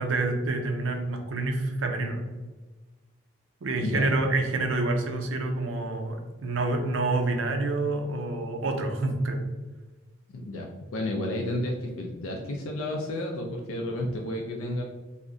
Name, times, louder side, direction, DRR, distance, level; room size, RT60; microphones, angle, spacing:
voice 1, 0.0-2.3 3.6-9.4, right 2 dB, 70° right, 4 dB, 0.5 m, -27 dB
voice 2, 3.8-4.1 10.3-14.8, left 1 dB, 80° left, 0 dB, 0.4 m, -32 dB
2.4 x 2.0 x 3.6 m, 1.2 s
head